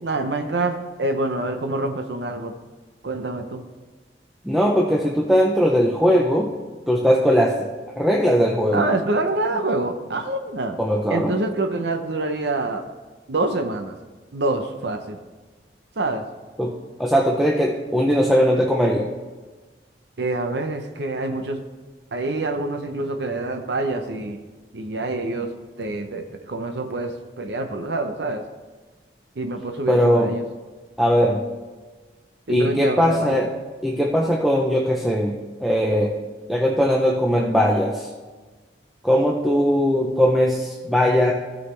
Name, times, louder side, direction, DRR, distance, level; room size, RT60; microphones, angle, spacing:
voice 1, 0.0-2.5 3.0-3.6 8.7-10.8 11.1-12.9 13.3-14.0 14.3-15.2 16.0-16.2 20.2-21.6 22.1-24.4 24.7-25.5 25.8-28.4 29.4-30.4 32.5-33.4, right 2 dB, 70° right, 6 dB, 0.7 m, -26 dB
voice 2, 4.4-6.5 6.9-7.7 8.0-8.9 10.8-11.3 16.6-16.7 17.0-19.1 29.9-30.3 31.0-31.4 32.5-33.5 33.8-36.2 36.5-38.1 39.0-41.3, equal, ahead, -2 dB, 0.6 m, -19 dB
15.5 x 6.4 x 3.3 m, 1.3 s
head